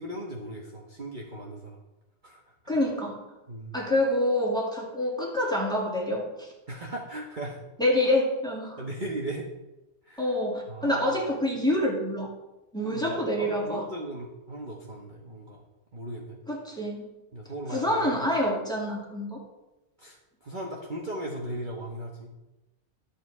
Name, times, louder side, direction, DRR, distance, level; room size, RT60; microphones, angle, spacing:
voice 1, 0.0-1.8 2.2-2.4 3.5-3.7 6.7-7.6 8.8-9.5 10.0-10.3 10.7-11.1 12.8-15.6 15.9-16.4 17.3-18.2 20.0-22.3, right 1 dB, 35° right, -2 dB, 1.3 m, -37 dB
voice 2, 2.7-3.3 3.7-6.5 7.8-8.8 10.2-12.3 12.7-13.9 16.5-17.1 17.7-19.4, left 1 dB, 5° left, -2 dB, 2.4 m, -27 dB
12.0 x 7.8 x 4.8 m, 0.99 s
omnidirectional pair, 1.5 m